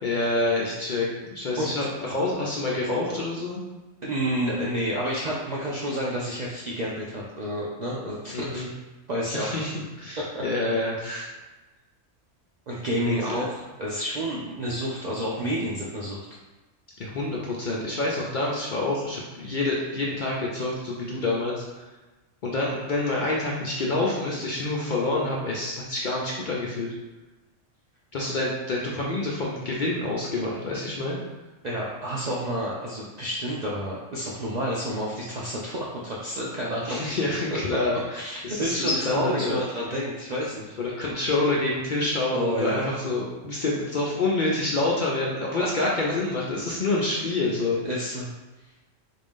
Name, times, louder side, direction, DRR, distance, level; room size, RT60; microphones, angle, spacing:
voice 1, 0.0-3.6 8.3-8.7 9.3-11.3 13.0-13.4 17.0-21.8 22.4-26.9 28.1-31.2 36.8-39.6 40.8-47.8, left 2 dB, 55° left, -4 dB, 0.5 m, -27 dB
voice 2, 4.0-8.6 9.1-9.6 10.2-10.4 12.7-16.3 31.6-37.0 37.5-37.6 38.1-40.8 42.3-42.9 45.8-45.9 47.8-48.3, equal, 60° right, -5 dB, 0.4 m, -29 dB
3.7 x 2.5 x 3.6 m, 1.1 s
omnidirectional pair, 1.3 m